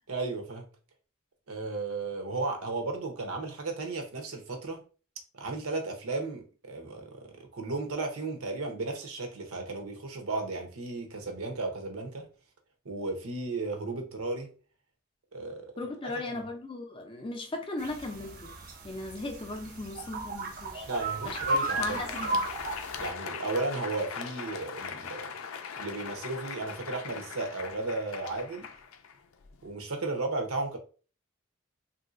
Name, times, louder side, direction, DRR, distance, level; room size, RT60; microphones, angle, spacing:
voice 1, 0.1-0.6 1.5-4.8 5.3-12.3 12.8-14.5 15.3-15.7 16.3-16.4 20.9-22.3 23.0-25.2 25.8-28.7 29.6-30.8, right 3 dB, 90° right, 0.8 m, -34 dB
voice 2, 15.8-18.5 18.8-20.9 21.2-21.4 21.8-22.5, left 2 dB, 25° left, 0.4 m, -37 dB
sound 1, 17.8-23.1, right 2 dB, 40° right, 0.6 m, -34 dB
Crowd, 20.7-29.7, left 6 dB, 85° left, 0.4 m, -40 dB
3.1 x 2.7 x 2.5 m
head